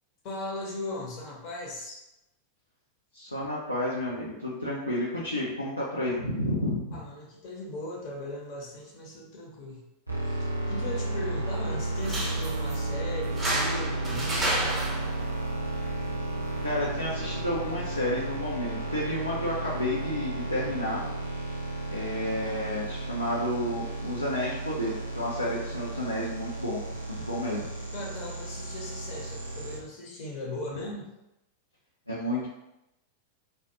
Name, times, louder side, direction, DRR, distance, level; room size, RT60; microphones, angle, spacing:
voice 1, 0.2-2.0 6.9-9.9 10.2-14.8 27.9-31.1, left 1 dB, 40° left, -1 dB, 0.7 m, -38 dB
voice 2, 3.1-7.0 16.6-21.0 21.9-26.8 27.1-27.7 32.1-32.5, left 1 dB, 85° left, -7 dB, 0.5 m, -31 dB
sound 1, 10.1-29.8, right 2 dB, 90° right, 0.5 m, -33 dB
sound 2, 11.9-18.9, right 1 dB, 10° right, 0.8 m, -34 dB
2.3 x 2.2 x 2.7 m, 0.91 s
figure-of-eight pair, 90°, 0 cm